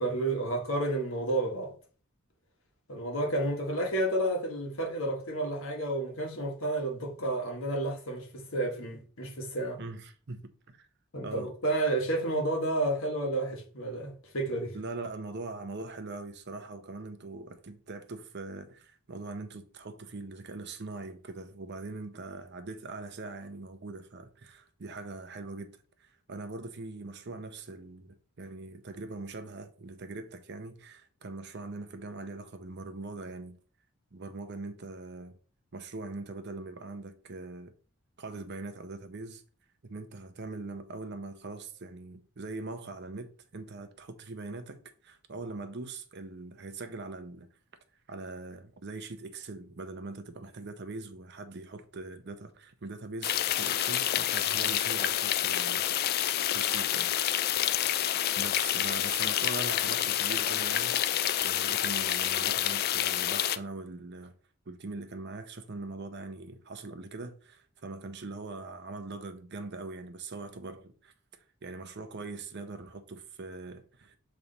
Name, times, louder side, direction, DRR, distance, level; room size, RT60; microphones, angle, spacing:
voice 1, 0.0-1.7 2.9-9.8 11.1-14.8, right 1 dB, 70° left, 1.5 m, -31 dB
voice 2, 9.8-10.4 10.7-10.9 11.2-11.5 14.7-25.7 26.0-33.6 34.1-35.4 35.7-37.7 38.2-39.4 39.8-47.5 48.1-55.8 56.1-57.1 58.4-64.3 64.7-71.1 71.6-74.2, right 3 dB, 55° right, 0.7 m, -42 dB
sound 1, 53.2-63.6, left 11 dB, 45° left, 0.3 m, -28 dB
7.1 x 3.3 x 4.0 m
head